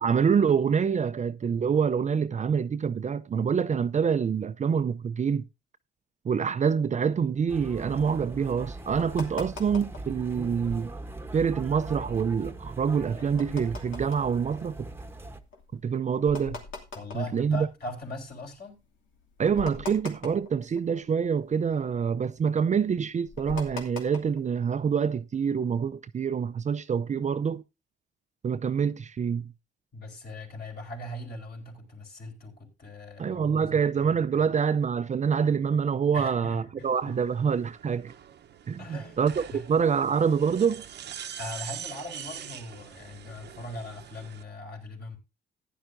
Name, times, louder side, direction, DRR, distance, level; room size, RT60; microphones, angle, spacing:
voice 1, 0.0-5.4 6.2-10.9 11.3-14.9 15.7-16.6 17.1-17.7 19.4-27.6 28.4-29.5 33.2-38.1 38.7-40.8, right 6 dB, 35° right, 0.6 m, -26 dB
sound 1, 7.0-10.2 10.6-10.7 10.9-11.2 11.6-18.3 18.8-18.9 19.1-21.3 21.5-24.6, left 4 dB, 75° left, 2.6 m, -43 dB
sound 2, 7.5-15.4, right 2 dB, 10° right, 1.1 m, -41 dB
voice 2, 16.9-18.8 29.9-34.5 36.1-37.2 38.8-39.2 39.5-39.6 41.4-45.2, left 2 dB, 50° left, 4.4 m, -40 dB
sound 3, 36.8-44.4, right 9 dB, 60° right, 0.9 m, -43 dB
15.0 x 10.0 x 2.6 m
cardioid pair, 90°, 20 cm